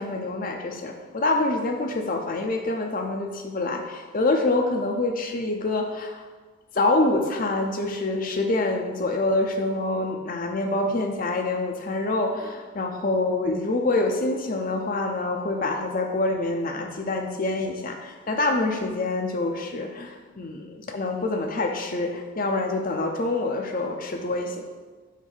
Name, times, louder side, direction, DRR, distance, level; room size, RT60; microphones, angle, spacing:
voice 1, 0.0-6.2 6.7-24.6, left 2 dB, 40° left, 3 dB, 0.6 m, -26 dB
7.3 x 2.7 x 5.5 m, 1.4 s
head